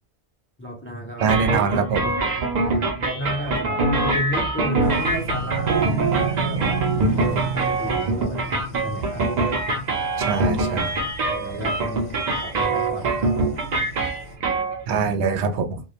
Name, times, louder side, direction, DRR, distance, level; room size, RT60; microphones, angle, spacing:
voice 1, 0.6-1.3 2.6-6.8 7.1-9.3 11.3-13.6, equal, 15° left, 0.4 m, -33 dB
sound 1, 1.2-14.8, right 3 dB, 50° right, 0.5 m, -24 dB
voice 2, 1.2-2.1 10.2-11.0 14.9-15.8, right 5 dB, 90° right, 0.8 m, -23 dB
sound 2, 4.8-14.3, right 4 dB, 70° left, 0.9 m, -32 dB
2.2 x 2.0 x 2.7 m
omnidirectional pair, 1.1 m